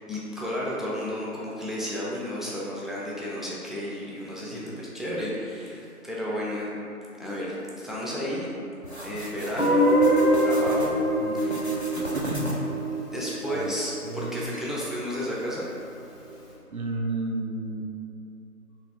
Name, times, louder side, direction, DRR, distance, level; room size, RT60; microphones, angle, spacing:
voice 1, 0.1-6.7 7.2-8.5 9.0-9.9 10.4-11.0 11.3-11.6 13.1-15.7, equal, ahead, -6 dB, 0.4 m, -32 dB
sound 1, 8.8-10.9 11.3-12.8, equal, 50° left, 0.5 m, -37 dB
Guitar, 9.6-14.5, right 1 dB, 85° left, 1.2 m, -24 dB
voice 2, 12.0-12.5 13.5-13.7 14.0-14.4 16.7-17.8, right 2 dB, 70° right, 2 dB, 0.5 m, -32 dB
3.3 x 2.9 x 4.0 m, 2.6 s
figure-of-eight pair, 175°, 45 cm